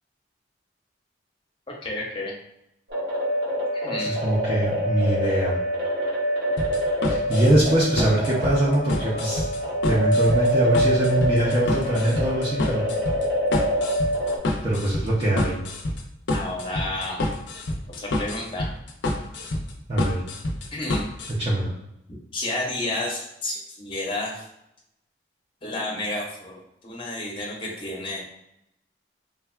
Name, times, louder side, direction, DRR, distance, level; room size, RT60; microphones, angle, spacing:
voice 1, 1.8-2.3 3.7-4.1 16.3-17.2 18.0-18.7 20.7-21.1 22.3-24.4 25.6-28.2, left 2 dB, 25° left, -3 dB, 0.7 m, -31 dB
sound 1, 2.9-14.4, equal, 80° right, 1.1 m, -25 dB
voice 2, 4.0-5.6 7.0-9.5 9.8-12.9 14.6-15.6 19.9-20.2 21.4-21.7, right 1 dB, 30° right, -7 dB, 0.5 m, -23 dB
sound 2, 6.6-21.3, left 1 dB, 80° left, 0.5 m, -28 dB
3.5 x 2.3 x 2.3 m, 0.82 s
head